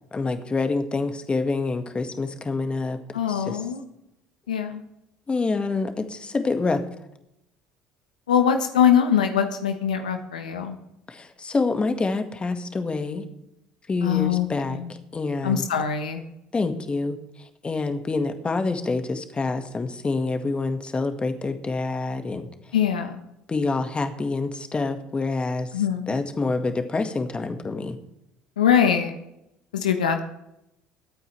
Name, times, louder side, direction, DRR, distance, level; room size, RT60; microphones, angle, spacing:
voice 1, 0.1-3.0 3.3-3.6 5.3-6.8 11.1-13.3 13.9-14.8 15.1-15.7 16.5-17.2 17.6-22.5 23.5-25.7 26.1-28.0, left 3 dB, 25° left, 7 dB, 1.8 m, -27 dB
voice 2, 3.1-3.8 4.5-4.8 8.3-10.8 14.0-14.9 15.4-16.2 22.7-23.2 25.7-26.2 28.6-29.1 29.7-30.2, left 8 dB, 85° left, 7 dB, 1.1 m, -22 dB
23.0 x 9.1 x 3.4 m, 0.82 s
hypercardioid pair, 60°, 4 cm